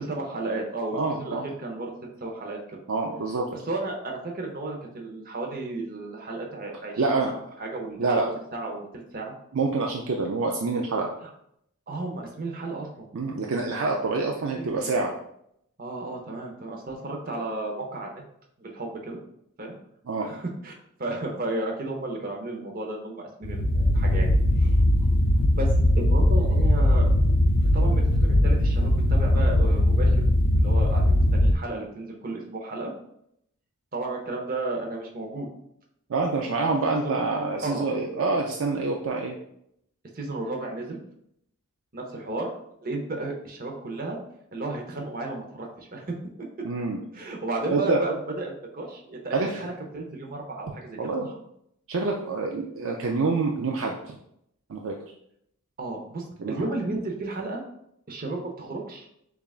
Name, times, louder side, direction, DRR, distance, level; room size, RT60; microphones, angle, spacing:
voice 1, 0.1-1.9 2.2-2.8 3.5-8.2 8.5-9.3 11.2-11.3 11.9-13.1 14.4-14.9 15.8-18.1 18.6-19.2 19.6-19.8 20.2-20.7 21.0-24.3 24.6-24.8 25.5-25.7 25.9-27.1 27.7-30.2 30.5-32.9 33.9-35.5 37.0-37.2 37.6-37.9 40.1-41.0 41.9-42.5 42.8-44.2 44.5-46.1 47.1-51.4 55.8-57.6 58.1-59.1, right 2 dB, 40° right, 0 dB, 0.8 m, -33 dB
voice 2, 0.9-1.5 2.9-3.5 7.0-7.3 8.0-8.3 9.5-11.1 13.1-15.1 20.1-20.3 36.1-39.4 46.6-47.0 47.7-48.0 49.3-49.6 51.0-51.3 51.9-54.1 54.7-54.9 56.4-56.7, right 3 dB, 60° right, 0 dB, 0.4 m, -26 dB
sound 1, 23.4-31.5, left 1 dB, 50° left, 0.4 m, -20 dB
6.7 x 2.4 x 2.4 m, 0.74 s
head